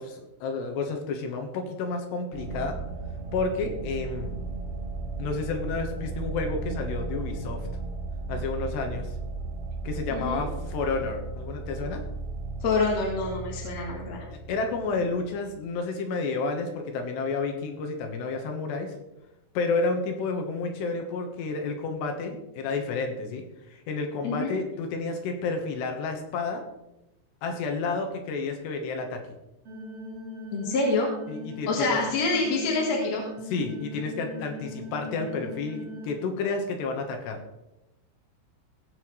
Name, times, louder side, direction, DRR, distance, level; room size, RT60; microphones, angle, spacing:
voice 1, 0.0-2.8 3.3-4.4 5.2-7.7 8.3-9.1 9.9-12.0 14.3-19.0 19.6-26.6 27.4-29.2 31.3-32.0 33.5-37.4, left 4 dB, 80° left, 4 dB, 3.5 m, -30 dB
sound 1, 2.3-15.7, right 3 dB, 85° right, 3.9 m, -35 dB
voice 2, 10.1-10.4 12.6-14.3 24.2-24.5 30.5-31.1 31.7-33.2, left 3 dB, 50° left, -1 dB, 2.3 m, -26 dB
sound 2, 29.6-36.1, left 1 dB, 40° right, 3.3 m, -40 dB
17.5 x 8.0 x 3.2 m, 0.93 s
omnidirectional pair, 5.0 m